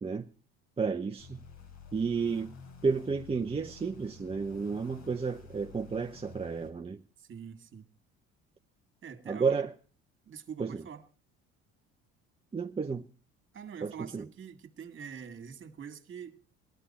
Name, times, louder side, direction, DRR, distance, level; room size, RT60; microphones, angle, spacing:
voice 1, 0.8-1.4 1.9-2.5 2.8-7.0 9.3-9.7 10.6-10.8 12.5-13.1 13.8-14.3, right 5 dB, 20° right, 0.7 m, -32 dB
sound 1, 1.2-6.7, left 4 dB, 80° left, 3.7 m, -51 dB
voice 2, 7.2-7.9 9.0-9.6 10.3-11.0 13.5-16.4, right 7 dB, 40° right, 2.1 m, -45 dB
18.0 x 13.0 x 4.3 m
supercardioid pair, 80°, 30 cm